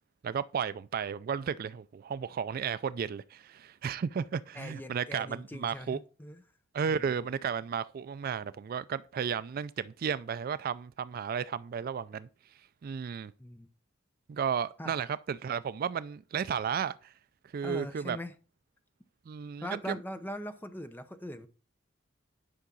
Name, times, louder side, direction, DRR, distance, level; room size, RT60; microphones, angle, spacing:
voice 1, 0.2-6.0 6.7-12.3 12.8-13.3 14.3-17.1 17.5-18.2 19.3-20.0, right 7 dB, 45° right, 0.3 m, -33 dB
voice 2, 4.5-6.4 6.9-7.1 13.4-13.7 14.8-14.9 17.6-18.3 19.6-21.5, equal, 10° left, 0.7 m, -41 dB
10.0 x 5.7 x 3.9 m
head